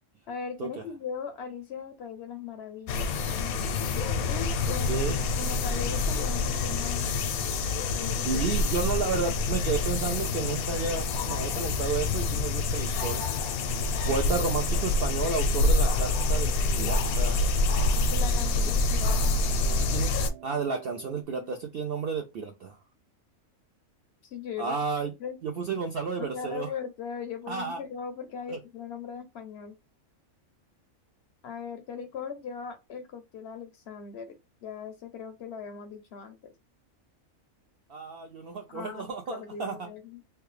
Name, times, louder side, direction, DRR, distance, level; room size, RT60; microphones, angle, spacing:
voice 1, 0.3-3.1 4.2-5.1 5.4-7.1 7.9-8.5 8.8-8.9 14.0-14.1 18.1-19.4 21.3-21.5 24.2-24.8 25.2-25.4 26.2-29.7 31.4-36.5 38.7-40.2, left 6 dB, 65° left, 0.7 m, -39 dB
sound 1, 2.9-20.3, left 3 dB, 85° left, 1.0 m, -27 dB
sound 2, 3.0-21.2, right 10 dB, 85° right, 1.0 m, -50 dB
voice 2, 4.7-5.2 8.2-13.2 14.1-17.5 18.6-18.7 19.8-20.1 20.4-22.8 24.6-25.1 25.4-26.7 27.5-27.8 28.5-28.6 37.9-39.7, right 5 dB, 65° right, 0.5 m, -32 dB
3.2 x 2.3 x 3.1 m
omnidirectional pair, 1.5 m